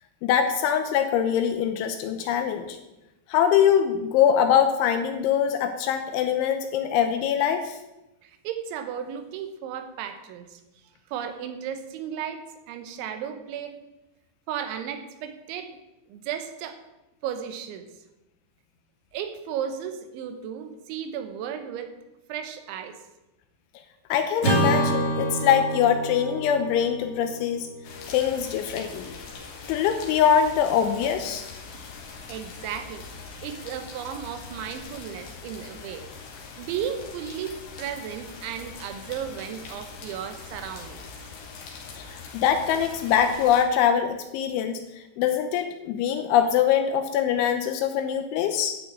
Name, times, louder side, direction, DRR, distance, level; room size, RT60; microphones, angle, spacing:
voice 1, 0.2-2.8 3.3-7.8 24.1-27.7 28.1-29.1 29.7-31.5 42.0-44.8 45.2-48.8, left 8 dB, 80° left, 7 dB, 3.0 m, -23 dB
voice 2, 8.2-10.6 11.1-13.8 14.5-15.8 16.1-16.8 17.2-17.9 19.1-21.9 22.3-23.0 32.3-36.1 36.6-41.0, right 8 dB, 75° right, 8 dB, 3.2 m, -34 dB
Acoustic guitar / Strum, 24.4-28.8, right 1 dB, 35° left, 4.3 m, -28 dB
sound 1, 27.8-43.6, left 5 dB, 55° left, 3.1 m, -42 dB
11.0 x 6.2 x 8.6 m, 0.96 s
omnidirectional pair, 5.8 m